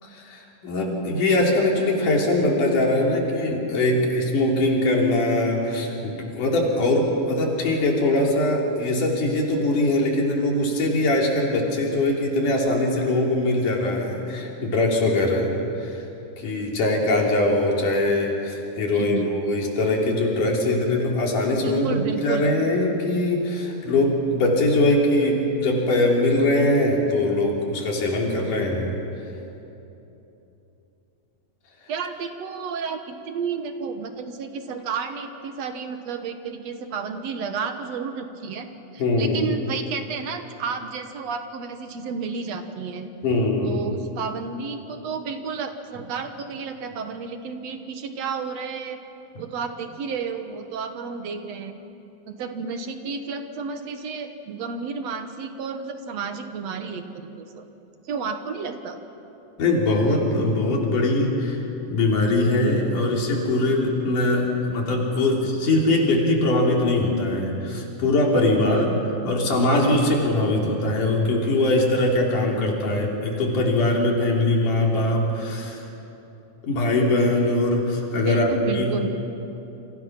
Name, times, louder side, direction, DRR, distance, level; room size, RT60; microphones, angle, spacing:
voice 1, 0.0-16.0 16.4-28.9 39.0-39.5 43.2-43.8 49.3-49.4 59.6-69.0 69.2-75.8 76.6-79.1, left 2 dB, 80° left, -1 dB, 4.9 m, -22 dB
voice 2, 18.9-19.3 21.6-22.5 31.9-38.7 38.9-43.1 43.6-49.0 49.4-51.7 52.3-57.7 58.1-59.0 78.3-79.1, right 5 dB, 60° right, 7 dB, 2.3 m, -31 dB
29.0 x 26.0 x 6.0 m, 2.9 s
omnidirectional pair, 3.6 m